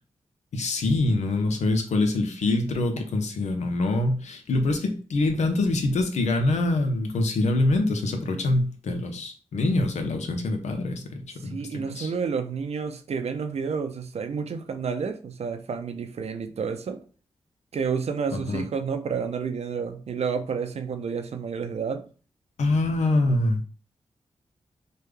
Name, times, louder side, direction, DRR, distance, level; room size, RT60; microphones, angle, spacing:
voice 1, 0.5-12.1 18.3-18.7 22.6-23.6, left 2 dB, 80° left, 5 dB, 0.6 m, -25 dB
voice 2, 11.5-17.0 17.7-22.0, right 6 dB, 65° right, 7 dB, 0.5 m, -30 dB
3.3 x 2.2 x 3.2 m, 0.38 s
cardioid pair, 50°, 12 cm